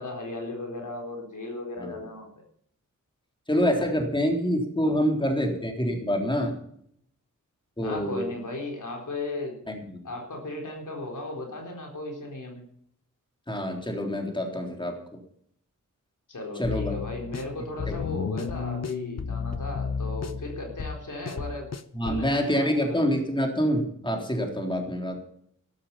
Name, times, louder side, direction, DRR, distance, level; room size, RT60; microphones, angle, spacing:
voice 1, 0.0-2.4 7.8-9.6 10.0-12.6 16.3-21.7 22.0-23.0, left 2 dB, 70° left, 1 dB, 4.1 m, -36 dB
voice 2, 3.5-6.6 7.8-8.3 9.7-10.1 13.5-15.0 16.6-17.0 17.9-18.1 21.9-25.2, equal, 15° left, 2 dB, 3.7 m, -26 dB
sound 1, 16.6-22.3, left 5 dB, 55° left, 0.9 m, -33 dB
13.5 x 12.0 x 5.6 m, 0.67 s
wide cardioid pair, 70°, 32 cm